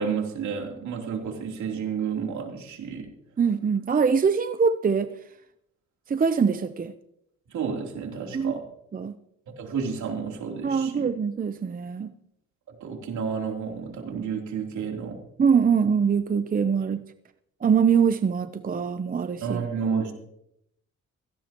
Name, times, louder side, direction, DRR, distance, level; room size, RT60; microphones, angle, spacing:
voice 1, 0.0-3.1 7.5-8.6 9.5-11.1 12.8-15.2 19.4-20.1, right 6 dB, 70° right, 3.4 m, -31 dB
voice 2, 3.4-5.1 6.1-6.9 8.3-8.5 8.9-9.1 10.6-12.1 15.4-17.0 17.6-19.6, right 6 dB, 30° right, 0.7 m, -23 dB
17.0 x 16.0 x 3.0 m
cardioid pair, 90°, 30 cm